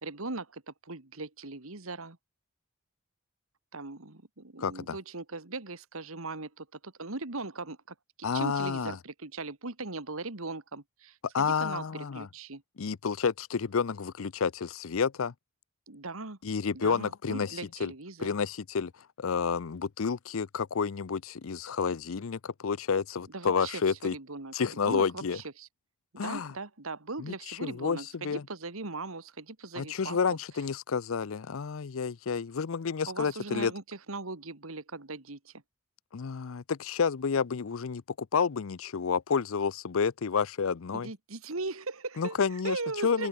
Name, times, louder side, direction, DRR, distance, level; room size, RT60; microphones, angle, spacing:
voice 1, 0.0-2.2 3.7-12.6 15.9-16.4 16.7-18.4 23.3-25.7 26.1-30.2 33.1-33.8 34.1-35.6 40.9-42.4 42.6-43.3, right 3 dB, 85° right, 2.1 m, -39 dB
voice 2, 4.6-5.0 8.2-9.0 11.3-12.3 12.8-15.3 16.4-17.9 18.2-24.2 24.5-25.4 26.2-26.5 27.2-28.4 29.8-33.7 36.1-41.1 42.2-43.3, left 6 dB, 80° left, 0.6 m, -30 dB
open air
head